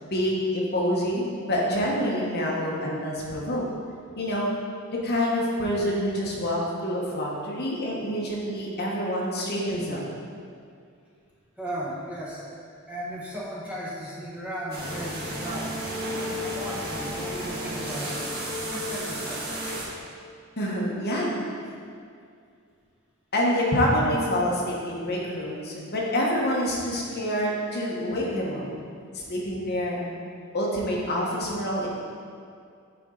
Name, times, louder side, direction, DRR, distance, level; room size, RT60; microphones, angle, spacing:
voice 1, 0.0-3.6 4.2-4.5 4.9-10.0 20.6-21.3 23.3-28.7 29.3-30.1 30.5-31.9, equal, 50° left, -3 dB, 1.2 m, -27 dB
voice 2, 11.6-12.4 12.9-15.8 16.4-18.2 18.7-19.4, equal, 5° right, -7 dB, 1.1 m, -35 dB
sound 1, 14.7-19.9, equal, 50° right, 1.5 m, -32 dB
9.0 x 4.2 x 3.9 m, 2.3 s
head